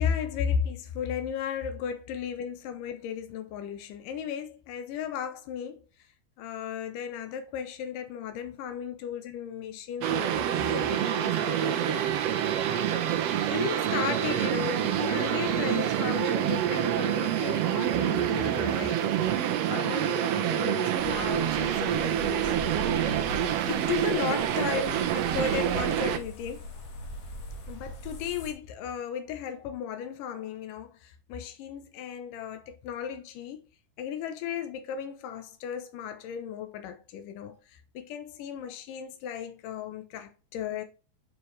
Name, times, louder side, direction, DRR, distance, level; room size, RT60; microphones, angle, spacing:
voice 1, 0.0-5.8 6.4-12.1 13.0-19.0 19.3-23.0 23.7-26.7 27.7-33.6 34.0-40.8, left 8 dB, 85° left, 2.4 m, -35 dB
sound 1, 10.0-26.2, right 10 dB, 70° right, 1.5 m, -27 dB
sound 2, 21.0-28.5, equal, 55° left, 2.3 m, -40 dB
9.1 x 4.7 x 3.2 m
omnidirectional pair, 3.7 m